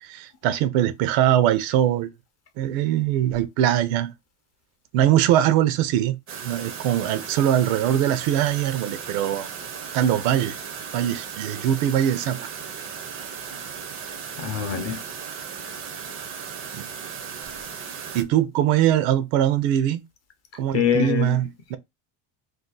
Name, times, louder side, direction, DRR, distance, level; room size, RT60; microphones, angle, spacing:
voice 1, 0.0-2.1 2.6-4.1 4.9-6.2 6.4-9.5 9.9-10.6 10.9-12.5 16.7-16.9 18.1-20.0 20.5-21.8, right 11 dB, 85° right, 0.6 m, -22 dB
sound 1, 6.3-18.2, right 7 dB, 30° right, 0.4 m, -36 dB
voice 2, 14.4-15.0 20.7-21.4, left 8 dB, 35° left, 0.5 m, -24 dB
2.6 x 2.4 x 3.7 m
cardioid pair, 155°, 49 cm